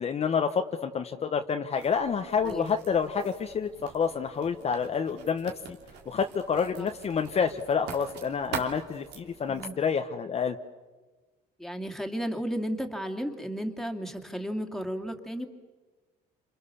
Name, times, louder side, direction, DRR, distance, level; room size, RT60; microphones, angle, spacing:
voice 1, 0.0-5.8 6.1-10.6, left 6 dB, 40° left, 5 dB, 1.2 m, -28 dB
Writing, 1.8-9.7, right 6 dB, 85° right, 3.3 m, -44 dB
voice 2, 11.6-15.5, equal, ahead, 4 dB, 2.6 m, -33 dB
28.5 x 27.5 x 7.1 m, 1.3 s
cardioid pair, 110°, 17 cm